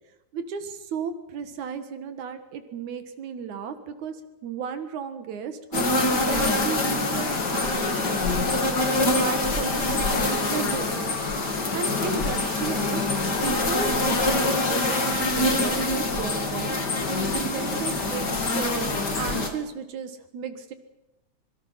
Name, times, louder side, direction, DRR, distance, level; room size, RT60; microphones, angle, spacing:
voice 1, 0.3-4.2 4.4-8.1 9.0-11.2 11.7-13.0 13.4-16.8 17.3-20.7, right 6 dB, 75° right, 9 dB, 2.9 m, -34 dB
sound 1, 5.7-19.5, left 2 dB, 35° left, 2.7 m, -25 dB
25.0 x 22.5 x 5.8 m, 0.94 s
omnidirectional pair, 3.4 m